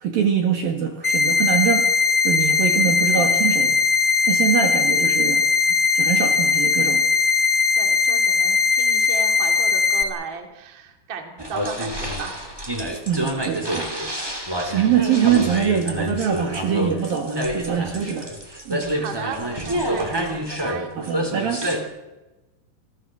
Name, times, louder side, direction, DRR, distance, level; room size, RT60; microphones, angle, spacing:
voice 1, 0.0-1.9 2.2-3.8 4.3-7.0 12.9-13.9 14.2-18.3 18.7-18.9 21.0-21.6, right 8 dB, 55° right, 3 dB, 3.2 m, -23 dB
sound 1, 1.0-10.0, left 5 dB, 15° left, 2.4 m, -19 dB
voice 2, 2.8-3.1 7.8-12.5 18.9-20.9, right 5 dB, 30° right, 4 dB, 2.6 m, -35 dB
sound 2, 11.4-21.8, equal, 10° right, 1.2 m, -27 dB
26.5 x 17.5 x 7.7 m, 1.1 s
omnidirectional pair, 5.8 m